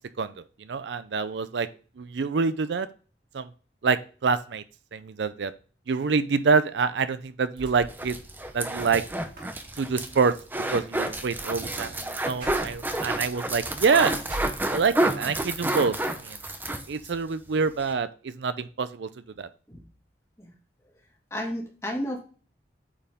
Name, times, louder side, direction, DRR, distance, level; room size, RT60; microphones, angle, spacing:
voice 1, 0.2-1.7 2.0-2.9 3.3-3.5 3.8-4.6 4.9-5.5 5.9-8.2 8.5-9.0 9.8-10.3 10.7-14.2 14.7-15.9 16.2-16.4 16.9-19.1 19.4-19.5, right 5 dB, 75° right, 13 dB, 0.5 m, -26 dB
sound 1, 7.6-15.2 15.6-16.4, right 1 dB, 50° right, 2.3 m, -45 dB
sound 2, 7.8-17.2 17.5-17.6 17.8-17.9, right 1 dB, 10° right, 0.6 m, -30 dB
voice 2, 21.3-22.2, equal, 15° left, -1 dB, 1.9 m, -33 dB
8.8 x 4.6 x 3.5 m, 0.38 s
head